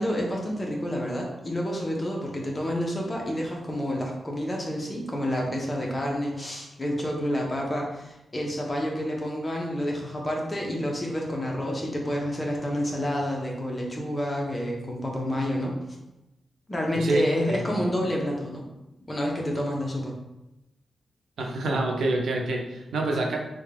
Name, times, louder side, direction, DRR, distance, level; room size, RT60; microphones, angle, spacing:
voice 1, 0.0-15.8 16.7-18.6 19.1-20.1, equal, 25° left, -1 dB, 0.7 m, -29 dB
voice 2, 17.5-17.9 21.4-23.4, right 2 dB, 90° right, 0 dB, 0.6 m, -27 dB
3.6 x 2.2 x 3.3 m, 0.93 s
wide cardioid pair, 115°, 0 cm